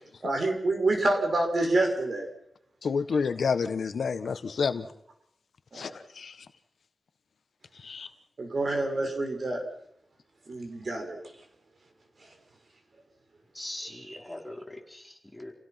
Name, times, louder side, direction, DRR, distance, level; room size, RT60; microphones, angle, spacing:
voice 1, 0.2-2.3 5.7-5.9 8.4-9.6 10.5-11.2 13.8-14.2, right 2 dB, 50° right, 3 dB, 6.3 m, -27 dB
voice 2, 2.8-4.9 5.7-6.5 7.7-8.1, left 5 dB, 85° left, 10 dB, 1.5 m, -29 dB
voice 3, 13.5-15.5, left 1 dB, 10° left, 1 dB, 4.7 m, -42 dB
29.0 x 17.0 x 6.0 m, 0.74 s
wide cardioid pair, 110°, 0 cm